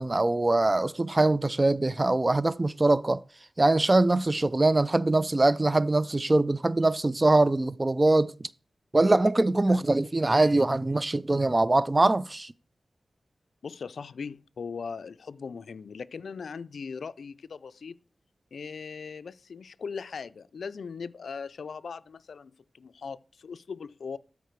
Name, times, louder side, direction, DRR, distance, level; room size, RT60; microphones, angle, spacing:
voice 1, 0.0-3.2 3.6-8.3 8.9-12.5, right 2 dB, 30° right, 0.4 m, -23 dB
voice 2, 13.6-18.0 18.5-24.2, left 5 dB, 85° left, 0.3 m, -39 dB
13.0 x 4.8 x 4.5 m
wide cardioid pair, 70°, 0 cm